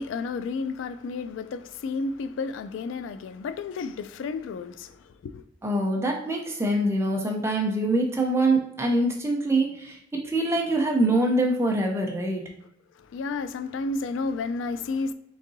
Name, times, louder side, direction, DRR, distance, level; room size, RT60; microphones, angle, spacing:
voice 1, 0.0-5.4 13.0-15.1, left 4 dB, 85° left, 0.3 m, -32 dB
voice 2, 5.6-12.4, right 1 dB, 15° right, 0.6 m, -24 dB
3.9 x 3.6 x 2.7 m
head